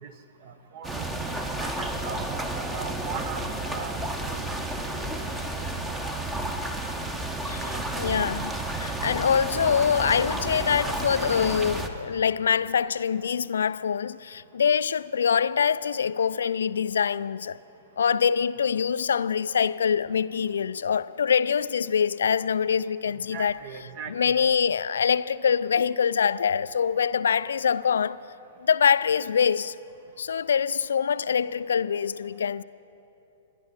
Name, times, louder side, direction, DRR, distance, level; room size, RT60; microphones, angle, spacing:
voice 1, 0.4-2.2 2.7-4.0 4.3-4.5 5.0-5.3 7.6-7.8 23.0-24.3, right 6 dB, 40° right, 1.2 m, -40 dB
sound 1, 0.8-11.9, right 2 dB, 10° right, 1.0 m, -31 dB
voice 2, 7.5-17.6 18.0-23.5 24.1-28.2 28.6-29.8 30.2-32.6, left 7 dB, 65° left, 0.3 m, -24 dB
27.0 x 11.0 x 4.2 m
figure-of-eight pair, 110°, 0 cm